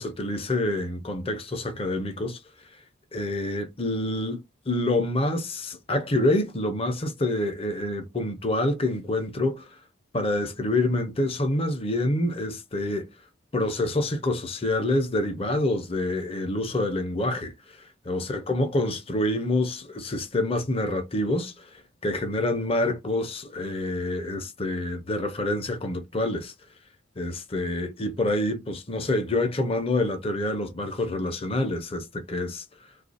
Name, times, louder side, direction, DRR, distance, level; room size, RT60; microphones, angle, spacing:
voice 1, 0.0-2.4 3.1-9.7 10.1-13.1 13.5-17.5 18.1-21.6 22.0-26.5 27.2-32.6, left 1 dB, 30° left, 0.6 m, -27 dB
2.8 x 2.4 x 4.0 m
head